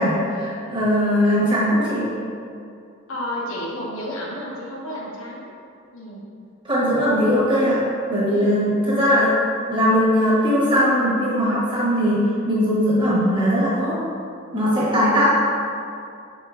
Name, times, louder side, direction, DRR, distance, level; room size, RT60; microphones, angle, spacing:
voice 1, 0.0-2.0 6.6-7.8 8.1-9.3 9.7-14.0 14.5-15.3, equal, 25° right, -8 dB, 1.0 m, -19 dB
voice 2, 3.1-5.5 5.9-6.2 8.3-8.8 14.6-15.0, equal, 80° left, -4 dB, 0.9 m, -31 dB
5.0 x 3.8 x 2.4 m, 2.4 s
head